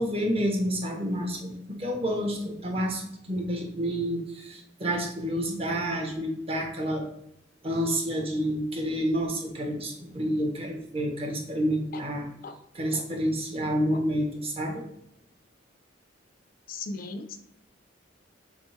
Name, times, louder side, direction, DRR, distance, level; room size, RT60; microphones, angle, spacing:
voice 1, 0.0-7.1 7.6-12.3 12.7-14.9, equal, 30° right, 2 dB, 0.9 m, -29 dB
voice 2, 16.7-17.4, left 3 dB, 50° left, 8 dB, 0.4 m, -38 dB
3.6 x 3.4 x 4.2 m, 0.74 s
head